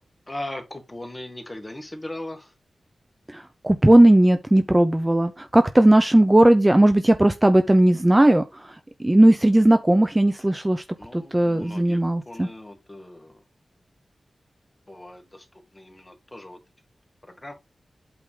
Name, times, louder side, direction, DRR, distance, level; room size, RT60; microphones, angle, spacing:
voice 1, 0.3-2.5 11.0-13.4 14.9-16.6 17.2-17.5, left 1 dB, 20° left, 1.9 m, -38 dB
voice 2, 3.3-8.7 9.0-10.8 11.1-12.5, right 1 dB, 15° right, 0.6 m, -17 dB
8.4 x 3.5 x 4.9 m
wide cardioid pair, 95°, 0 cm